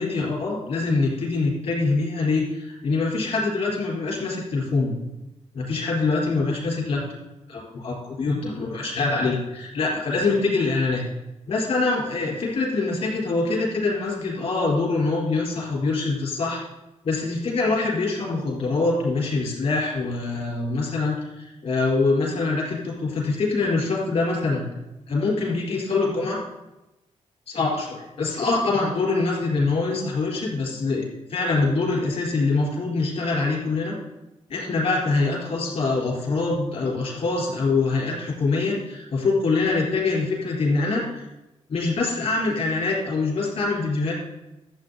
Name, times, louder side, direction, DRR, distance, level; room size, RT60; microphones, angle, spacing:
voice 1, 0.0-4.9 5.5-7.0 7.5-11.0 11.5-16.6 17.0-24.7 25.1-26.4 27.5-31.0 31.3-34.0 34.5-41.2 41.7-44.1, left 3 dB, 60° left, -2 dB, 4.3 m, -24 dB
12.5 x 7.9 x 4.1 m, 0.98 s
cardioid pair, 115°, 12 cm